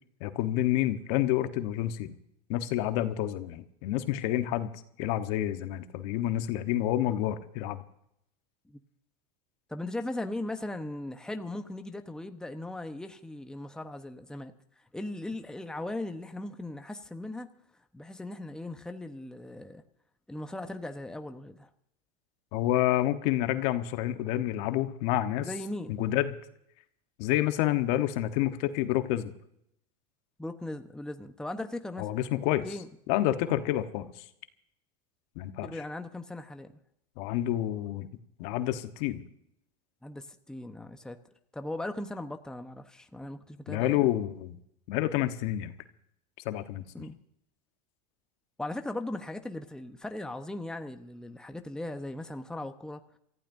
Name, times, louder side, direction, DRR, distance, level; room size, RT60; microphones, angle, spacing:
voice 1, 0.2-2.2 2.5-4.7 5.0-7.8 22.5-25.5 25.9-26.4 27.2-29.3 32.0-32.7 33.1-34.1 35.4-35.7 37.2-38.1 38.4-39.2 43.7-44.6 44.9-45.7 46.4-46.8, left 13 dB, 65° left, 9 dB, 1.3 m, -28 dB
voice 2, 9.7-14.5 14.9-17.5 17.9-19.8 20.3-21.7 25.4-26.0 30.4-32.1 32.6-32.9 35.6-36.7 40.0-41.2 41.5-44.1 46.9-47.2 48.6-53.2, left 1 dB, 5° left, 7 dB, 1.0 m, -38 dB
26.5 x 15.0 x 2.7 m, 0.75 s
supercardioid pair, 110°, 21 cm